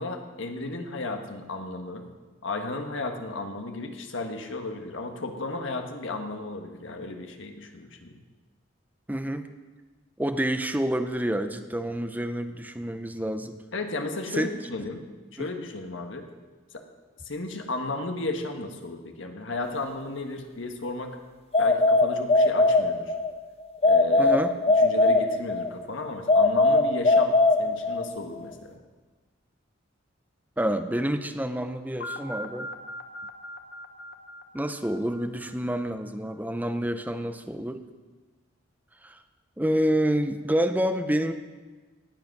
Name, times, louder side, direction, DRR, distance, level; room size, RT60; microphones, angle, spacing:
voice 1, 0.0-2.1 2.4-8.2 13.7-15.0 15.3-16.2 16.7-16.8 17.2-21.2 21.6-23.1 23.8-24.3 24.8-28.8, left 2 dB, 75° left, 5 dB, 1.5 m, -34 dB
voice 2, 9.1-9.5 10.2-13.6 14.3-14.5 15.4-15.5 24.2-24.6 30.6-32.7 34.5-37.9 39.0-39.2 39.6-41.3, right 1 dB, 10° right, 8 dB, 0.7 m, -28 dB
sound 1, 21.5-23.3 23.8-25.7 26.3-28.1, left 2 dB, 30° left, 0.8 m, -20 dB
sound 2, 32.0-36.0, left 1 dB, 55° left, 1.1 m, -40 dB
18.0 x 7.9 x 6.0 m, 1.3 s
head